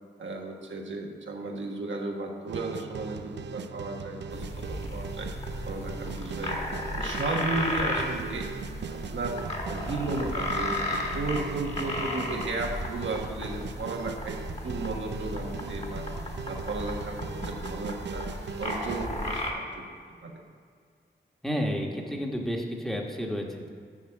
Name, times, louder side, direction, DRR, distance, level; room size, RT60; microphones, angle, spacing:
voice 1, 0.2-5.3 5.6-6.6 7.0-8.5 8.9-9.4 9.7-14.4 14.6-16.1 16.5-18.3 18.6-19.8 20.2-20.4, right 2 dB, 85° right, 1 dB, 1.4 m, -34 dB
sound 1, 2.5-19.1, right 7 dB, 70° right, 0.4 m, -39 dB
sound 2, 4.3-19.5, left 1 dB, 35° left, 1.9 m, -34 dB
voice 2, 21.4-23.7, equal, ahead, 0 dB, 1.3 m, -31 dB
7.3 x 7.2 x 7.0 m, 2.1 s
wide cardioid pair, 70°, 19 cm